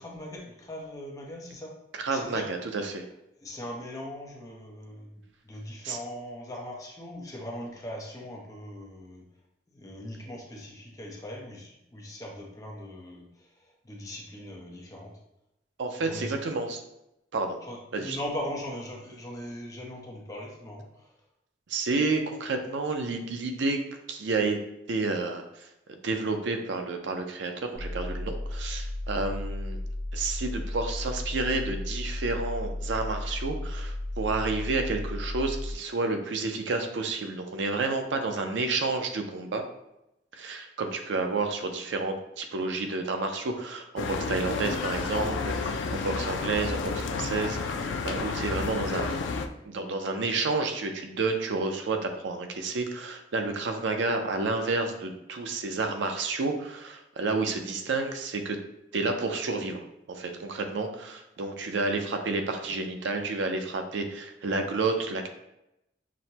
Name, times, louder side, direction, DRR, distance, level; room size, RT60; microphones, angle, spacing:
voice 1, 0.0-1.8 2.1-2.5 3.4-9.3 9.7-15.1 16.0-16.4 17.7-21.2, left 1 dB, 20° left, -2 dB, 0.7 m, -40 dB
voice 2, 2.0-3.0 5.8-6.0 15.8-16.8 17.3-17.6 17.9-18.2 21.7-23.8 24.1-24.6 24.9-25.7 26.0-29.8 30.1-39.6 40.3-49.2 49.6-58.6 58.9-59.8 60.1-65.3, right 3 dB, 85° right, 5 dB, 0.5 m, -30 dB
sound 1, 27.7-35.7, left 1 dB, 35° right, 0.6 m, -34 dB
sound 2, 44.0-49.5, left 4 dB, 90° left, 0.4 m, -31 dB
6.0 x 2.1 x 2.8 m, 0.86 s
head